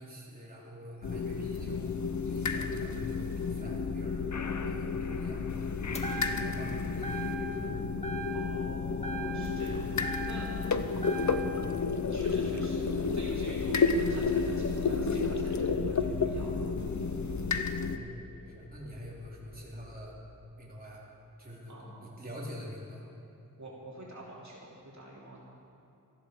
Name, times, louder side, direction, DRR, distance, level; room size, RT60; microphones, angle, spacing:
voice 1, 0.0-1.9 2.2-4.2 4.6-5.6 6.3-7.8 17.9-20.2 20.6-21.1 21.4-21.7 22.0-23.0, equal, 25° right, -5 dB, 3.4 m, -46 dB
sound 1, 1.0-18.0, left 4 dB, 60° left, 0.8 m, -31 dB
sound 2, 5.9-6.7 7.0-7.7 8.0-8.7 9.0-10.7 11.0-11.6, right 3 dB, 20° left, 1.8 m, -40 dB
sound 3, 7.4-20.1, left 1 dB, 85° left, 1.8 m, -51 dB
voice 2, 8.3-10.5 11.1-16.6 21.7-22.2 23.6-25.4, right 1 dB, 55° right, -5 dB, 3.1 m, -48 dB
19.0 x 14.0 x 5.0 m, 2.9 s
wide cardioid pair, 75°, 33 cm